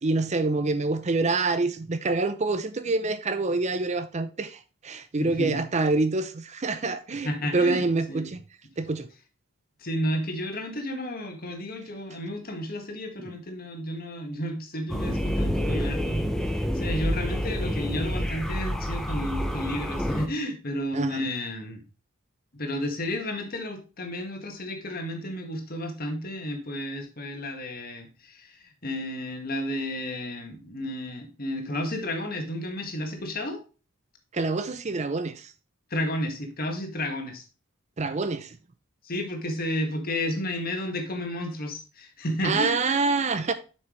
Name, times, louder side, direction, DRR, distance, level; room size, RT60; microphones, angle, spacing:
voice 1, 0.0-8.4 8.8-9.1 20.9-21.2 34.3-35.5 38.0-38.6 42.4-43.5, right 3 dB, 35° right, 0.5 m, -26 dB
voice 2, 5.2-5.6 7.2-8.3 9.8-21.8 22.5-33.6 35.9-37.4 39.0-42.8, left 1 dB, 45° left, 1.8 m, -32 dB
sound 1, 14.9-20.3, equal, ahead, 0.7 m, -28 dB
7.7 x 6.1 x 3.1 m
head